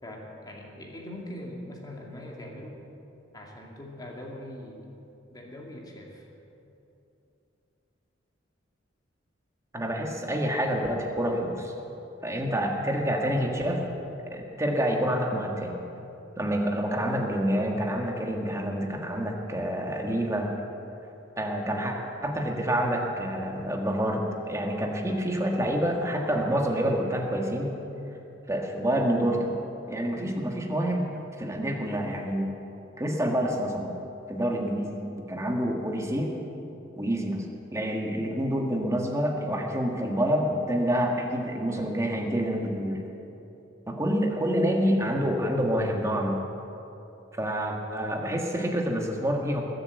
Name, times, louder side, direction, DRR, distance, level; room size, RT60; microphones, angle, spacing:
voice 1, 0.0-2.8 3.3-4.9 5.3-6.3, left 1 dB, 20° left, -1 dB, 2.3 m, -41 dB
voice 2, 9.7-11.7 12.2-13.8 14.3-15.8 16.4-20.5 21.4-22.0 22.2-27.7 28.5-29.6 29.9-32.5 33.0-33.9 34.3-35.0 35.3-36.3 37.0-37.4 37.7-43.0 43.9-46.4 47.4-49.6, equal, 15° right, 1 dB, 1.7 m, -27 dB
20.5 x 7.9 x 8.2 m, 2.9 s
head